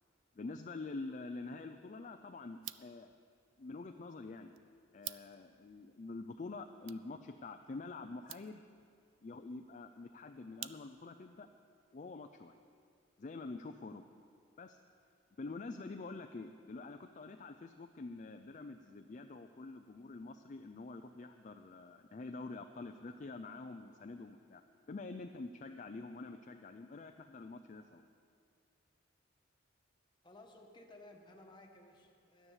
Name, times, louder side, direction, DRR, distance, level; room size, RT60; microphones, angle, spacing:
voice 1, 0.4-3.2 3.6-4.6 4.9-8.6 9.2-11.5 11.9-12.6 13.2-14.0 14.6-14.8 15.4-24.6 24.9-28.0, left 3 dB, 40° left, 6 dB, 0.4 m, -46 dB
sound 1, 2.5-11.2, right 14 dB, 70° right, 0.4 m, -54 dB
voice 2, 30.2-32.5, left 2 dB, 25° left, 1 dB, 1.2 m, -57 dB
12.0 x 9.7 x 7.3 m, 2.3 s
head